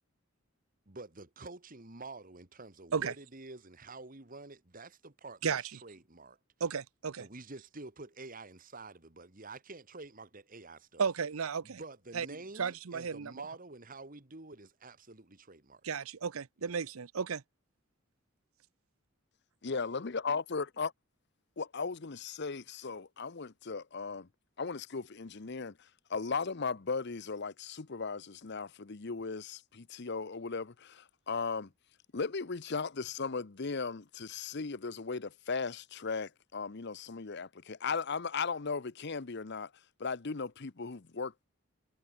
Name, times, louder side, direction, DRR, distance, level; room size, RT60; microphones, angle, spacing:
voice 1, 0.9-6.4 7.2-11.1 11.6-15.8 16.6-16.8, right 3 dB, 40° right, 1.9 m, -48 dB
voice 2, 6.6-7.3 11.0-11.8 12.1-12.3 12.6-13.4 15.8-17.4, right 6 dB, 90° right, 0.7 m, -34 dB
voice 3, 19.6-20.9 21.6-24.3 24.6-31.7 32.1-39.7 40.0-41.4, left 4 dB, 55° left, 0.8 m, -37 dB
head